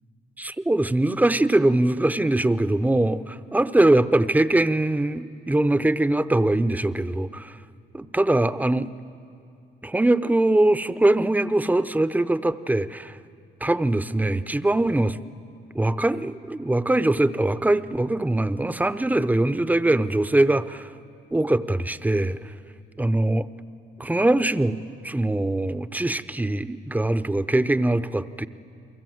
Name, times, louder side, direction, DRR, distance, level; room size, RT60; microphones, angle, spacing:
voice 1, 0.4-7.6 7.9-8.9 9.8-13.2 13.6-15.2 15.7-20.9 21.3-22.5 23.0-23.5 24.0-28.5, right 1 dB, 10° right, 13 dB, 0.7 m, -22 dB
30.0 x 23.0 x 7.9 m, 2.5 s
cardioid pair, 90°, 20 cm